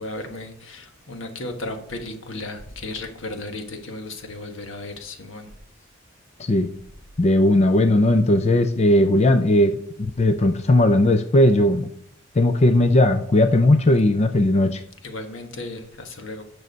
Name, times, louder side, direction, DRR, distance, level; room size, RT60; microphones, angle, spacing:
voice 1, 0.0-5.5 15.0-16.4, left 2 dB, 80° left, 1.5 m, -35 dB
voice 2, 6.4-6.7 7.2-11.9 12.4-14.8, left 1 dB, 35° left, 0.5 m, -18 dB
9.3 x 6.3 x 5.3 m
head